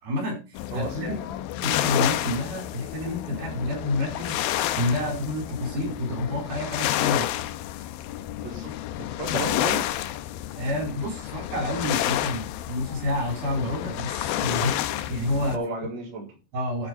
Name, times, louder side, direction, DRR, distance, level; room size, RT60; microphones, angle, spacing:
voice 1, 0.0-1.2 1.6-4.4 4.8-7.4 10.6-15.6 16.5-16.9, left 1 dB, 80° right, 0 dB, 6.3 m, -29 dB
sound 1, 0.6-15.6, left 13 dB, 85° left, 2.6 m, -30 dB
voice 2, 0.7-1.3 8.4-8.7 9.0-9.9 15.5-16.4, right 3 dB, 50° right, -3 dB, 4.8 m, -33 dB
12.5 x 5.2 x 5.2 m, 0.29 s
omnidirectional pair, 4.2 m